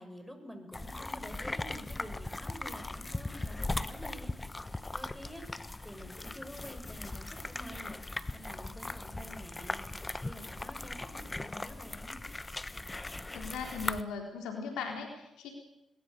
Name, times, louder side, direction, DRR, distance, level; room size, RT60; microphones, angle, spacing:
voice 1, 0.0-4.3 4.9-12.2, equal, 5° left, 6 dB, 6.4 m, -48 dB
sound 1, 0.7-14.0, left 2 dB, 20° left, 1.3 m, -39 dB
voice 2, 13.3-15.5, left 5 dB, 80° left, 3 dB, 4.0 m, -38 dB
22.0 x 21.5 x 6.9 m, 0.86 s
hypercardioid pair, 45°, 0 cm